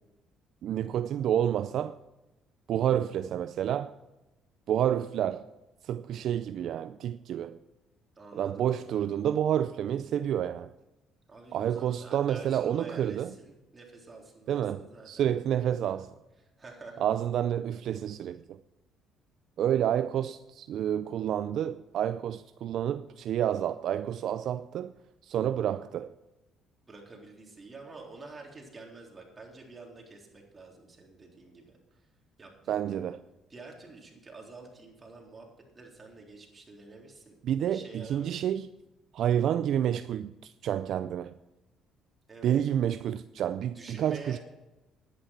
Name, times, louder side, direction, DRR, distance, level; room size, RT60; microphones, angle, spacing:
voice 1, 0.6-2.0 2.7-3.9 4.7-5.5 5.8-7.6 8.3-10.7 11.5-13.3 14.5-16.1 17.0-18.6 19.6-24.9 25.2-26.1 32.7-33.2 37.4-38.7 39.1-41.3 42.4-44.4, right 10 dB, 65° right, 0.4 m, -29 dB
voice 2, 8.2-9.1 11.3-15.3 15.9-16.0 16.6-17.1 26.9-32.1 32.4-33.1 33.5-35.5 35.7-37.4 37.7-38.4 42.3-42.6 43.4-44.4, right 3 dB, 25° right, 3.7 m, -48 dB
11.0 x 10.0 x 5.8 m
cardioid pair, 90°, 0 cm